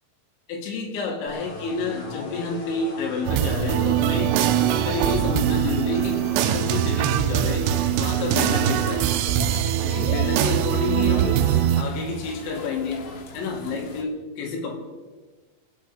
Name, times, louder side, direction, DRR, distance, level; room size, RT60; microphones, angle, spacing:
voice 1, 0.5-9.1 9.8-13.0 13.3-14.8, left 4 dB, 70° left, 1 dB, 4.4 m, -29 dB
sound 1, 1.3-6.8, left 2 dB, 45° left, 4.4 m, -39 dB
sound 2, 3.3-11.8, right 11 dB, 80° right, 2.4 m, -22 dB
sound 3, 7.6-14.0, left 3 dB, 90° left, 4.4 m, -38 dB
26.0 x 9.2 x 5.2 m, 1.3 s
omnidirectional pair, 5.6 m